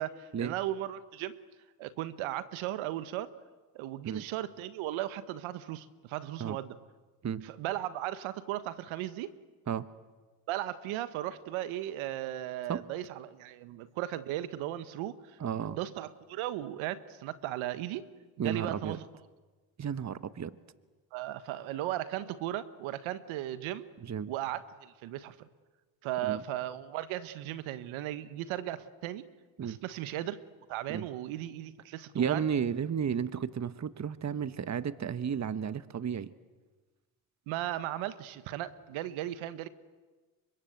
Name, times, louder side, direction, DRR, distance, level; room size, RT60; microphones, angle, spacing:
voice 1, 0.0-1.4 1.8-3.3 3.7-6.8 7.4-9.3 10.5-15.4 15.7-18.1 18.4-19.1 21.1-23.9 24.3-25.5 26.0-29.2 29.6-30.4 30.7-32.5 37.5-39.7, right 13 dB, 75° right, 14 dB, 1.4 m, -36 dB
voice 2, 15.4-15.8 18.4-19.0 19.8-20.5 24.0-24.3 26.2-26.4 29.6-29.8 30.9-31.1 32.1-36.3, right 7 dB, 35° right, 14 dB, 1.3 m, -33 dB
29.5 x 25.0 x 8.1 m, 1.3 s
supercardioid pair, 70°, 48 cm